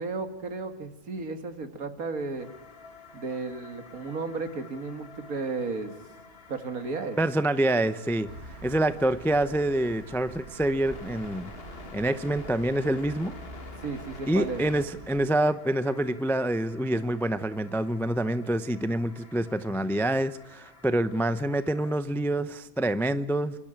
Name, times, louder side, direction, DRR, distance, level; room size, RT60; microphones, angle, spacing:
voice 1, 0.0-2.5 3.1-5.9 6.5-7.2 13.8-14.6, right 4 dB, 70° right, 8 dB, 2.2 m, -34 dB
sound 1, 2.4-22.0, left 4 dB, 40° left, 1.8 m, -49 dB
voice 2, 7.2-8.3 8.6-11.5 11.9-13.3 14.3-23.6, right 1 dB, 5° left, 12 dB, 0.3 m, -26 dB
sound 2, 8.3-15.3, right 3 dB, 45° right, 1.5 m, -46 dB
27.5 x 12.0 x 8.9 m, 1.0 s
omnidirectional pair, 1.6 m